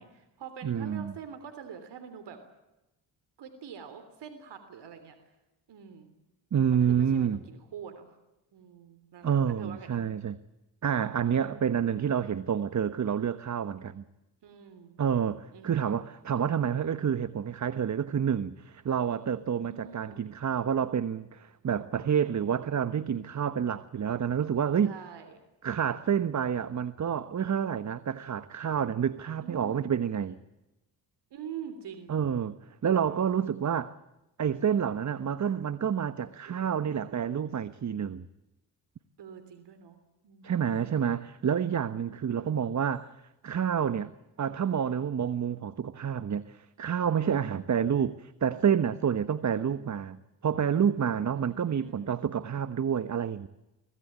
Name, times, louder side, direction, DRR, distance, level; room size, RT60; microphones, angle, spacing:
voice 1, 0.0-2.4 3.4-5.1 5.7-6.1 6.7-8.1 8.5-9.9 14.4-15.0 15.5-15.9 19.7-20.2 24.8-25.4 29.4-29.9 31.3-32.1 39.2-40.0 40.2-40.5 42.4-42.7 49.6-50.0 51.4-52.2, right 7 dB, 65° right, 3.4 m, -45 dB
voice 2, 0.6-1.1 6.5-7.4 9.2-10.4 10.8-14.0 15.0-24.9 25.6-30.4 32.1-33.9 34.4-38.3 40.4-43.1 43.4-44.1 44.4-50.2 50.4-53.5, right 8 dB, 40° right, 1.1 m, -28 dB
24.5 x 17.5 x 8.7 m
supercardioid pair, 65°, 44 cm